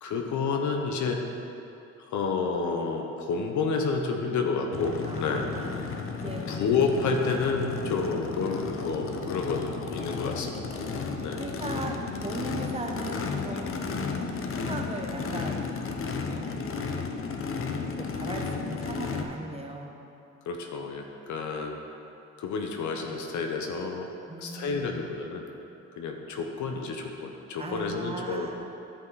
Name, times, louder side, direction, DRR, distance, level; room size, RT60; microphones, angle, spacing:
voice 1, 0.0-1.2 2.1-5.5 6.5-10.7 11.2-11.4 13.5-13.8 20.5-21.8 22.4-24.1 24.4-25.5 26.0-28.5, left 4 dB, 75° left, 3 dB, 1.0 m, -30 dB
Race car auto racing / Idling / Accelerating revving vroom, 4.7-19.2, left 4 dB, 45° left, 0.8 m, -33 dB
voice 2, 5.1-6.5 8.0-8.6 11.4-12.0 12.2-13.8 14.6-15.7 16.1-16.7 17.8-20.0 24.3-25.0 27.6-28.6, right 2 dB, 20° right, 1 dB, 1.1 m, -38 dB
13.0 x 5.6 x 4.0 m, 2.8 s
cardioid pair, 90°, 30 cm